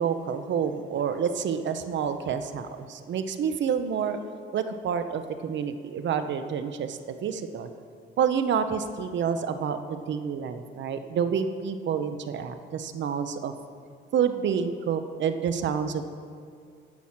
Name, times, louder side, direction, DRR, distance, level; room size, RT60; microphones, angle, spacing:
voice 1, 0.0-4.2 4.5-7.7 8.2-13.5 14.1-16.1, right 7 dB, 65° right, 9 dB, 0.9 m, -28 dB
16.0 x 6.3 x 5.9 m, 2.2 s
cardioid pair, 90°, 20 cm